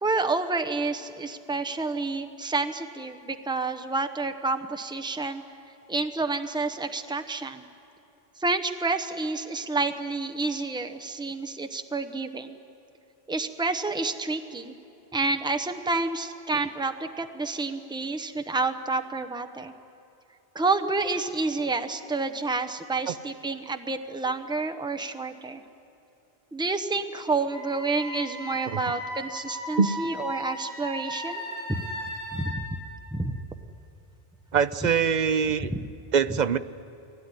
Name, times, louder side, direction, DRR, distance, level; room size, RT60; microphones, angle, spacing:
voice 1, 0.0-5.4 5.9-7.6 8.4-12.6 13.3-14.7 15.1-19.7 20.5-25.6 26.5-31.4 32.3-32.7 33.1-33.4 35.7-35.8, right 3 dB, 5° right, 8 dB, 0.8 m, -29 dB
Wind instrument woodwind instrument, 27.5-32.5, equal, 80° right, 6.2 m, -36 dB
voice 2, 34.5-35.7 36.1-36.6, right 6 dB, 50° right, 13 dB, 0.7 m, -23 dB
23.0 x 17.0 x 9.8 m, 3.0 s
omnidirectional pair, 1.1 m